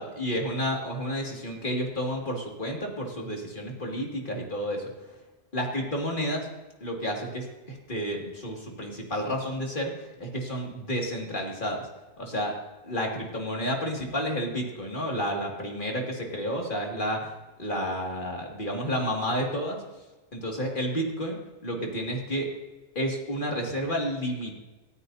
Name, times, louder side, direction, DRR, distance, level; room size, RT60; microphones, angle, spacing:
voice 1, 0.0-4.9 5.5-6.5 6.8-11.9 12.2-12.5 12.8-17.3 17.6-19.8 20.3-21.4 21.6-22.5 22.9-24.5, equal, 45° left, 0 dB, 2.5 m, -31 dB
27.0 x 9.7 x 2.8 m, 1.2 s
omnidirectional pair, 1.2 m